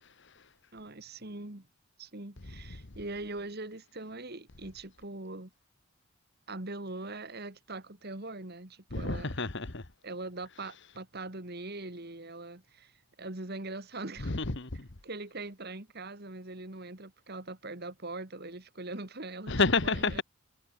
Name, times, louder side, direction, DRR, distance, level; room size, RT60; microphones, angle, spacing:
voice 1, 0.7-1.7 2.0-5.5 6.5-9.3 10.0-12.9 13.2-14.3 15.0-20.2, right 2 dB, 45° right, 2.0 m, -41 dB
voice 2, 8.9-9.8 14.2-14.9 19.5-20.2, left 3 dB, 50° left, 1.5 m, -29 dB
head